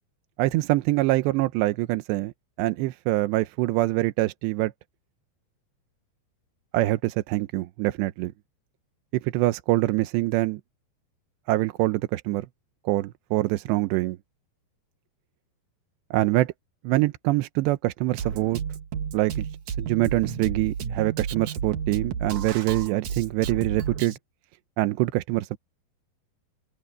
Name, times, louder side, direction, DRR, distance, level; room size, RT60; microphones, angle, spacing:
voice 1, 0.4-2.3 2.6-4.7 6.7-8.3 9.1-10.6 11.5-12.5 12.9-14.2 16.1-16.5 16.8-18.6 19.1-24.2 24.8-25.6, right 18 dB, 80° right, 2.9 m, -24 dB
Drum kit, 18.2-24.2, right 7 dB, 55° right, 2.3 m, -32 dB
open air
omnidirectional pair, 5.1 m